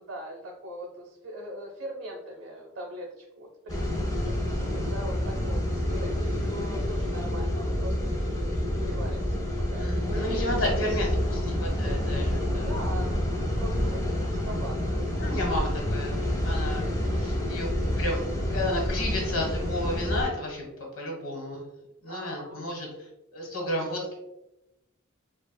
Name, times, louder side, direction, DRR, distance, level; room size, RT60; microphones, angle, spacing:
voice 1, 0.0-8.5 8.8-10.9 12.6-15.7 17.0-17.5 22.1-22.6, equal, 70° right, 0 dB, 0.7 m, -41 dB
sound 1, 3.7-20.2, left 1 dB, 20° left, 0.7 m, -28 dB
voice 2, 9.8-13.3 15.2-16.9 17.2-17.7 18.0-20.6 20.9-21.7 22.0-23.1 23.3-24.1, left 1 dB, 75° left, 0 dB, 1.4 m, -32 dB
6.8 x 2.4 x 2.2 m, 0.91 s
head